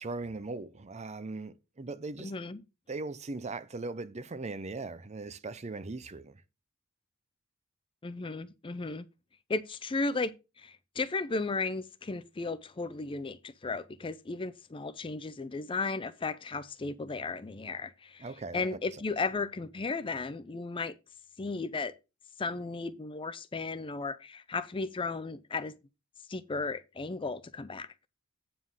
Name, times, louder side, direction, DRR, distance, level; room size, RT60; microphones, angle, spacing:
voice 1, 0.0-2.3 2.9-6.4 18.2-18.8, right 3 dB, 30° right, 0.6 m, -39 dB
voice 2, 2.2-2.6 8.0-9.1 9.5-18.3 18.5-21.0 21.4-21.9 22.4-25.7 26.3-27.9, left 3 dB, 25° left, 0.4 m, -35 dB
9.4 x 3.8 x 6.3 m
head